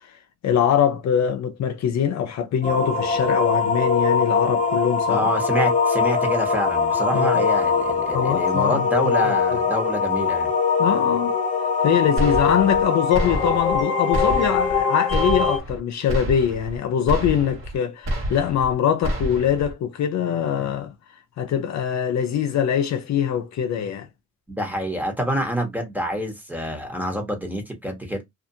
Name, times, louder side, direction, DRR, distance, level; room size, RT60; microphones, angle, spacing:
voice 1, 0.4-5.3 7.1-7.4 8.1-9.1 10.8-11.3 11.8-20.9 21.4-24.1, left 8 dB, 65° left, 0.6 m, -23 dB
sound 1, 2.6-15.6, left 5 dB, 25° left, 0.6 m, -22 dB
voice 2, 5.1-10.5 24.5-28.2, equal, 5° right, 1.1 m, -27 dB
sound 2, 12.2-12.8 13.1-13.8 14.1-14.8 15.1-15.8 16.1-16.8 17.1-17.8 18.1-18.7 19.0-19.7, equal, 45° right, 1.3 m, -28 dB
2.5 x 2.5 x 2.7 m
cardioid pair, 90°, 30 cm